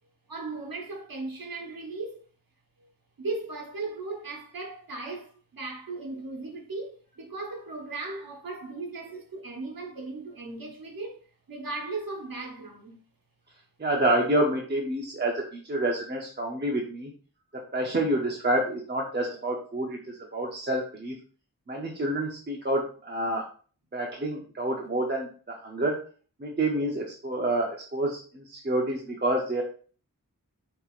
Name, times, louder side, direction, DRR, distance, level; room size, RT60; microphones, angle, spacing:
voice 1, 0.3-2.2 2.8-2.9 3.2-13.0, right 3 dB, 90° right, 1.0 m, -37 dB
voice 2, 13.8-17.1 17.5-21.2 21.7-23.5 23.9-26.0 26.4-29.6, right 1 dB, 30° right, 0.7 m, -28 dB
5.4 x 2.9 x 2.4 m
wide cardioid pair, 65°, 34 cm